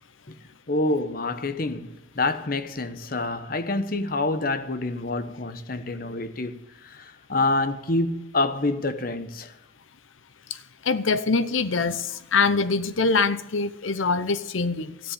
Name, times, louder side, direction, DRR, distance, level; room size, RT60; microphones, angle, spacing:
voice 1, 0.7-9.6, left 2 dB, 45° left, 0.9 m, -27 dB
voice 2, 10.8-15.1, left 4 dB, 85° left, 0.8 m, -24 dB
13.0 x 10.0 x 6.8 m
head